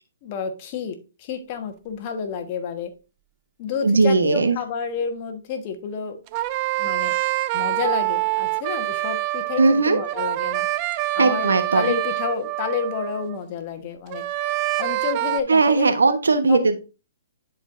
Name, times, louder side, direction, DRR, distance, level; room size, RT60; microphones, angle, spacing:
voice 1, 0.2-2.9 3.6-6.2 6.8-7.1 7.5-10.7 11.1-14.2 14.8-15.8 16.5-16.8, left 6 dB, 40° left, 6 dB, 1.2 m, -30 dB
voice 2, 3.8-4.6 9.6-10.0 11.2-11.9 15.5-16.8, right 3 dB, 90° right, 8 dB, 1.1 m, -18 dB
sound 1, 6.3-13.4 14.1-15.4, right 17 dB, 35° right, 0.3 m, -26 dB
10.0 x 4.5 x 2.6 m, 0.31 s
hypercardioid pair, 140°, 0 cm